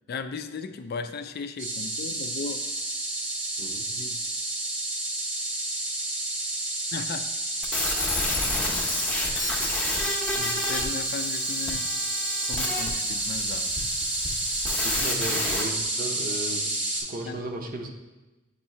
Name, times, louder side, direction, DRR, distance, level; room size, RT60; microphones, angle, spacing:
voice 1, 0.1-2.7 4.0-4.2 6.9-7.3 10.4-11.9 12.4-13.9 17.3-17.4, left 5 dB, 50° left, 9 dB, 0.3 m, -36 dB
sound 1, 1.6-17.0, right 2 dB, 80° right, 1.9 m, -30 dB
sound 2, 7.6-15.6, left 2 dB, 5° left, 0.7 m, -30 dB
voice 2, 14.8-17.9, right 1 dB, 45° right, 3 dB, 0.7 m, -35 dB
7.9 x 2.8 x 4.3 m, 1.1 s
head